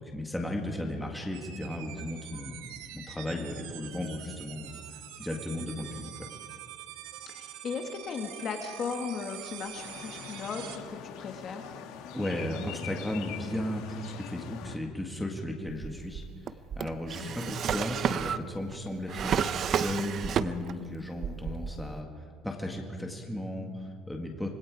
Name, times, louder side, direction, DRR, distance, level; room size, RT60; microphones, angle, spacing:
voice 1, 0.0-2.6 2.9-6.3 12.1-16.2 16.8-22.1 22.4-24.5, left 1 dB, 5° left, 1 dB, 1.8 m, -35 dB
sound 1, 1.3-10.8, right 11 dB, 85° right, 1.8 m, -45 dB
voice 2, 7.3-11.6 17.2-17.5, left 5 dB, 30° left, 4 dB, 1.8 m, -37 dB
sound 2, 9.8-14.8, left 9 dB, 65° left, 1.8 m, -43 dB
Drawer open or close, 15.7-20.9 21.2-22.0, right 8 dB, 30° right, 0.6 m, -31 dB
26.0 x 22.5 x 4.9 m, 2.2 s
cardioid pair, 180°, 0 cm